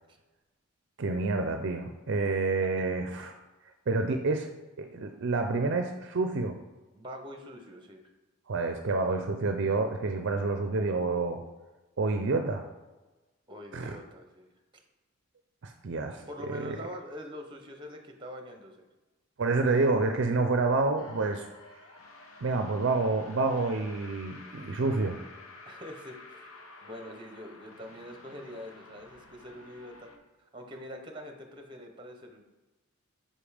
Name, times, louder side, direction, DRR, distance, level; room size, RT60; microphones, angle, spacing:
voice 1, 1.0-3.3 3.9-4.5 4.8-6.6 8.5-11.4 12.0-12.6 13.7-14.0 15.6-16.8 19.4-21.5 22.4-25.2, right 3 dB, 55° right, 6 dB, 0.4 m, -28 dB
voice 2, 6.9-8.0 13.5-14.5 14.7-14.8 16.3-18.9 20.4-20.5 25.7-26.5 26.8-30.1 30.4-32.4, equal, 20° right, 4 dB, 0.8 m, -44 dB
sound 1, 21.0-30.2, left 3 dB, 70° left, 0.9 m, -51 dB
5.3 x 5.2 x 5.0 m, 1.2 s
head